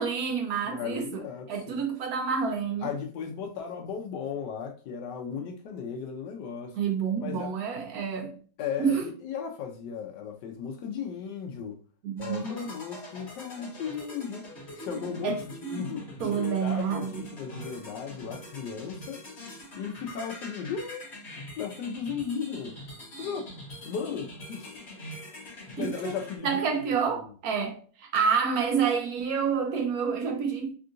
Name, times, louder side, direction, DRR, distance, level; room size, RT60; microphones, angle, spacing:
voice 1, 0.0-1.2 1.5-2.9 6.8-8.4 8.8-9.1 12.0-12.6 15.2-15.4 16.2-17.2 25.8-26.2 26.4-30.8, right 6 dB, 75° right, 0.9 m, -28 dB
voice 2, 0.7-1.8 2.8-6.8 7.2-7.5 8.6-11.8 12.2-14.5 14.7-19.2 19.7-21.1 21.6-22.8 23.2-23.5 23.8-24.9 25.8-26.6, left 6 dB, 75° left, 1.1 m, -36 dB
sound 1, 12.2-26.4, left 1 dB, 40° left, 1.2 m, -43 dB
3.6 x 2.4 x 2.5 m
omnidirectional pair, 2.0 m